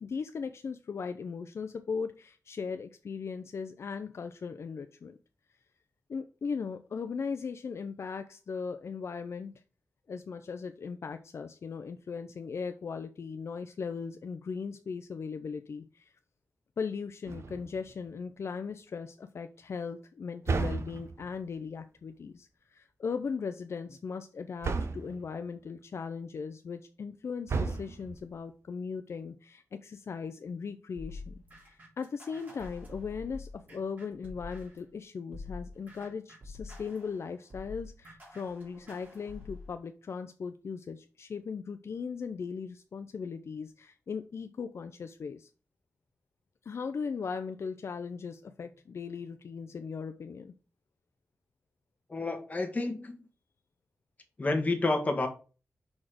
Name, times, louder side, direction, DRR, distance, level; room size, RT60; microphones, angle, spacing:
voice 1, 0.0-5.2 6.1-9.6 10.1-16.1 16.8-45.5 46.6-50.5, left 5 dB, 65° left, 8 dB, 0.5 m, -38 dB
sound 1, 17.3-17.9 20.5-21.4 24.6-25.3 27.5-28.3, right 4 dB, 65° right, 0.8 m, -33 dB
sound 2, 31.0-34.9 35.3-39.7, left 3 dB, 35° right, 3.6 m, -46 dB
voice 2, 52.1-53.2 54.4-55.3, left 2 dB, 30° left, 3 dB, 1.5 m, -29 dB
5.9 x 4.3 x 4.8 m, 0.35 s
wide cardioid pair, 110°, 5 cm